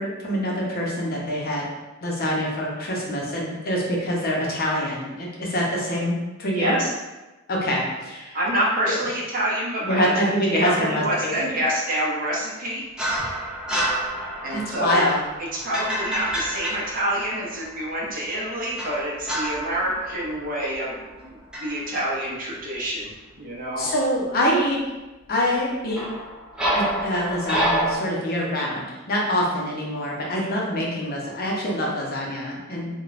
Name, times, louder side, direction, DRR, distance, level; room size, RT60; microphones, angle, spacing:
voice 1, 0.0-1.7 2.0-6.8 7.5-8.4 8.9-9.0 9.8-11.5 14.5-15.2 23.8-24.8 25.3-26.0 26.7-32.9, equal, 50° left, -3 dB, 0.6 m, -25 dB
voice 2, 6.5-6.9 8.3-10.1 10.5-12.8 14.4-15.0 15.4-23.1 23.3-23.9, right 1 dB, 45° right, -5 dB, 0.7 m, -27 dB
sound 1, 13.0-17.8 18.8-21.2 21.5-21.8 25.9-28.0, right 1 dB, 5° right, 0.5 m, -28 dB
3.2 x 2.2 x 2.4 m, 1.1 s
head